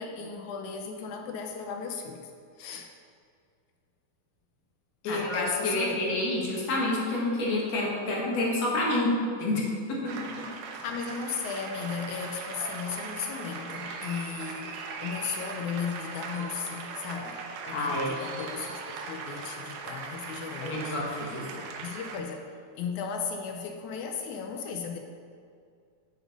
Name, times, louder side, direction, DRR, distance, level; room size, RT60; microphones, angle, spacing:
voice 1, 0.0-2.3 2.6-2.9 5.0-6.0 10.8-22.5 22.8-25.0, left 6 dB, 75° left, 4 dB, 2.0 m, -36 dB
voice 2, 5.0-9.1 9.4-10.1 17.7-18.1 20.6-21.5, left 2 dB, 55° left, -3 dB, 2.8 m, -28 dB
sound 1, 10.1-22.2, right 4 dB, 75° right, 2.4 m, -39 dB
9.8 x 7.3 x 5.1 m, 2.3 s
omnidirectional pair, 3.7 m